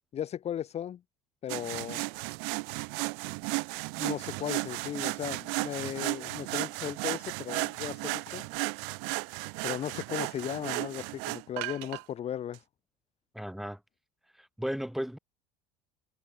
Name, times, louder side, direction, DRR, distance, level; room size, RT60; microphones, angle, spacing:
voice 1, 0.1-1.0 1.4-2.0 4.0-8.5 9.6-12.6, left 10 dB, 40° left, 1.6 m, -36 dB
sound 1, 1.5-12.0 12.5-12.6, right 40 dB or more, 65° right, 0.7 m, -34 dB
voice 2, 13.3-13.8 14.4-15.2, equal, ahead, 6.1 m, -35 dB
hypercardioid pair, 80°, 16 cm